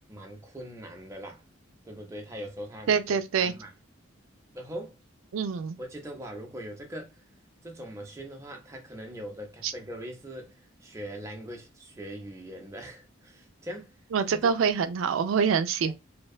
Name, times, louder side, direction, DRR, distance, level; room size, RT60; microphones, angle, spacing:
voice 1, 0.1-1.4 1.9-3.7 4.5-5.0 5.8-7.2 7.6-14.0 14.2-14.5 15.9-16.0, equal, 15° right, 0.5 m, -41 dB
voice 2, 2.9-3.5 5.3-5.8 9.6-9.7 14.1-15.9, right 6 dB, 90° right, 0.4 m, -25 dB
2.6 x 2.2 x 2.2 m
head